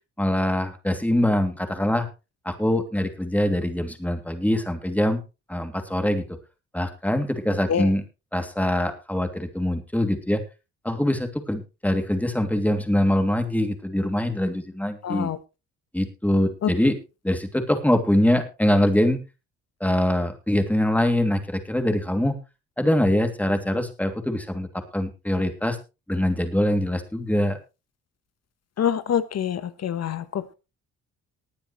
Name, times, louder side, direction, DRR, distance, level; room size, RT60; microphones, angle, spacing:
voice 1, 0.2-2.1 2.4-5.2 5.5-6.2 6.7-8.1 8.3-10.4 10.8-15.3 15.9-17.0 17.2-19.2 19.8-22.4 22.8-25.8 26.1-27.6, left 1 dB, 5° left, 6 dB, 2.8 m, -23 dB
voice 2, 15.0-15.4 28.8-30.2, left 9 dB, 55° left, 13 dB, 1.3 m, -25 dB
20.0 x 9.0 x 3.2 m, 0.29 s
cardioid pair, 90°, 30 cm